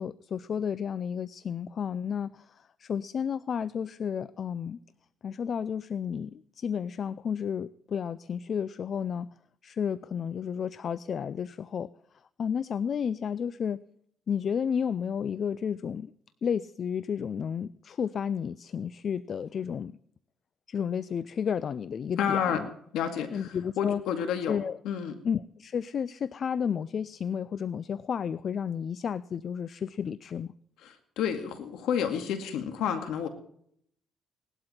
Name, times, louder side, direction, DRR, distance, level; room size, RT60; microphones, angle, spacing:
voice 1, 0.0-2.4 2.8-4.8 5.2-9.3 9.6-11.9 12.4-13.8 14.3-16.1 16.4-19.9 20.7-22.7 23.3-24.0 24.5-24.8 25.2-30.5, left 7 dB, 55° left, 18 dB, 0.4 m, -32 dB
voice 2, 22.2-22.7 22.9-24.6 24.8-25.2 30.8-33.3, left 8 dB, 85° left, 7 dB, 2.1 m, -30 dB
18.5 x 12.0 x 4.4 m, 0.67 s
cardioid pair, 90°, 0 cm